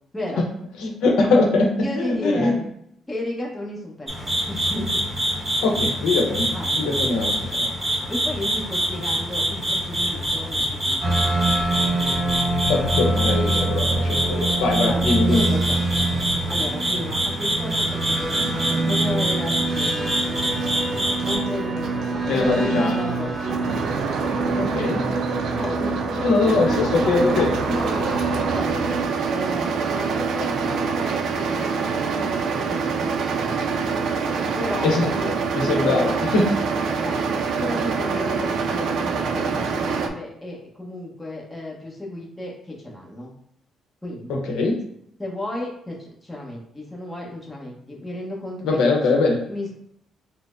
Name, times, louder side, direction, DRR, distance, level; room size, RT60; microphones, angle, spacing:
voice 1, 0.1-0.4 1.8-2.6 3.1-4.9 6.5-6.9 8.1-11.5 14.8-15.8 16.2-20.2 21.2-23.7 24.5-25.1 25.5-26.0 26.7-28.1 28.5-28.9 29.3-33.7 34.5-35.4 35.8-36.6 37.0-37.2 37.6-43.3 44.0-44.4 45.2-49.7, left 1 dB, 10° left, -3 dB, 0.9 m, -33 dB
voice 2, 0.8-2.5 5.6-7.7 12.7-15.5 22.3-23.0 24.6-25.0 26.2-27.6 34.8-35.1 35.5-36.5 44.3-44.8 48.6-49.4, left 3 dB, 85° left, 1 dB, 0.7 m, -22 dB
sound 1, 4.1-21.4, equal, 15° right, 1.2 m, -26 dB
sound 2, 11.0-29.0, right 2 dB, 45° right, 0.7 m, -26 dB
sound 3, 20.2-40.1, right 5 dB, 70° right, 0.3 m, -26 dB
4.1 x 2.0 x 2.5 m, 0.73 s
cardioid pair, 90°, 0 cm